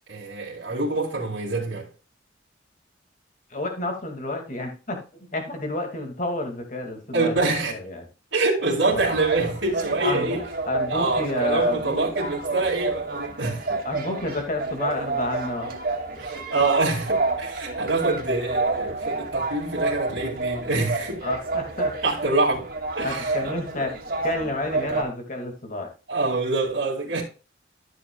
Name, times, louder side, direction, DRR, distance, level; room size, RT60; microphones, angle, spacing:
voice 1, 0.1-1.9 7.1-7.7 8.3-10.4 10.9-13.8 16.2-21.2 22.0-23.4 24.9-25.0 26.1-27.2, right 3 dB, 65° right, 2.4 m, -25 dB
voice 2, 3.5-7.4 7.7-8.1 8.8-9.0 9.8-10.3 10.7-12.0 13.8-15.7 21.2-21.9 23.0-23.9 24.2-25.9, left 2 dB, 40° left, 2.2 m, -30 dB
sound 1, 8.9-25.0, right 3 dB, 50° right, 2.4 m, -29 dB
13.0 x 7.1 x 2.3 m
head